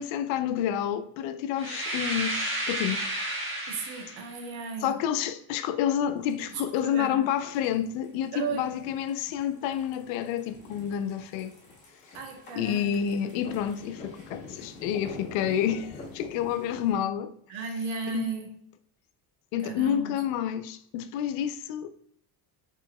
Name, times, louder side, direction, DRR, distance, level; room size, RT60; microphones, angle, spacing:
voice 1, 0.0-3.1 4.8-11.5 12.5-17.3 18.1-18.3 19.5-21.9, left 9 dB, 75° left, 0.6 m, -29 dB
sound 1, 1.6-4.3, right 1 dB, 25° right, 1.2 m, -32 dB
voice 2, 3.7-5.0 6.7-7.2 8.3-8.7 12.1-12.9 17.5-18.5 19.6-20.1, right 4 dB, 80° right, 1.1 m, -35 dB
sound 2, 6.1-16.9, left 3 dB, 25° left, 1.6 m, -46 dB
4.4 x 3.7 x 2.2 m
cardioid pair, 125°, 46 cm